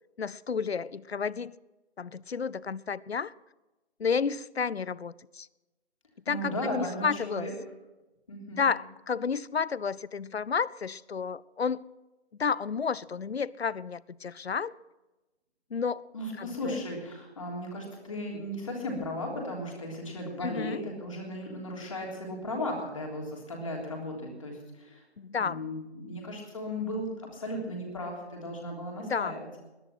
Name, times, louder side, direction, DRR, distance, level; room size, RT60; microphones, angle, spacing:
voice 1, 0.2-1.6 2.0-3.3 4.0-5.5 6.3-7.5 8.6-11.9 12.4-14.7 15.7-16.0 16.4-16.8 20.4-20.8 25.2-25.6 29.0-29.4, left 6 dB, 70° left, 22 dB, 0.6 m, -31 dB
voice 2, 6.3-7.5 8.3-8.6 16.1-25.0 25.3-29.5, left 1 dB, 30° left, -1 dB, 3.4 m, -36 dB
20.0 x 10.5 x 6.0 m, 1.1 s
figure-of-eight pair, 170°, 33 cm